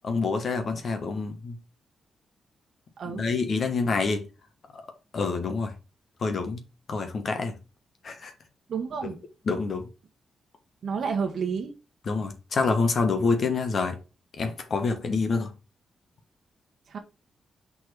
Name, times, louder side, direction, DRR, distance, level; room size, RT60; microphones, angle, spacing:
voice 1, 0.0-1.6 3.1-4.2 5.1-5.7 6.2-6.6 6.9-7.5 8.0-8.3 9.5-9.9 12.1-13.9 14.4-15.5, left 4 dB, 55° left, 1.4 m, -27 dB
voice 2, 8.7-9.2 10.8-11.7 16.9-17.0, right 6 dB, 65° right, 1.2 m, -30 dB
5.9 x 4.2 x 4.6 m
cardioid pair, 100°, 0 cm